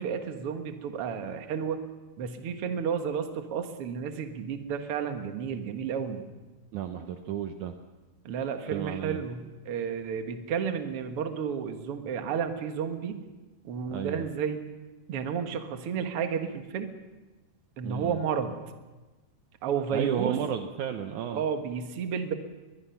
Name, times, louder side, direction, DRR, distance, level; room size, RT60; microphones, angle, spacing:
voice 1, 0.0-1.8 2.2-6.3 8.2-13.2 13.6-14.6 15.1-16.9 17.8-18.6 19.6-20.4 21.3-22.3, right 7 dB, 60° right, 6 dB, 1.5 m, -32 dB
voice 2, 6.7-7.7 8.7-9.2 13.9-14.3 17.8-18.2 19.9-21.4, right 9 dB, 80° right, 6 dB, 1.7 m, -32 dB
22.0 x 21.5 x 5.8 m, 1.2 s
omnidirectional pair, 4.7 m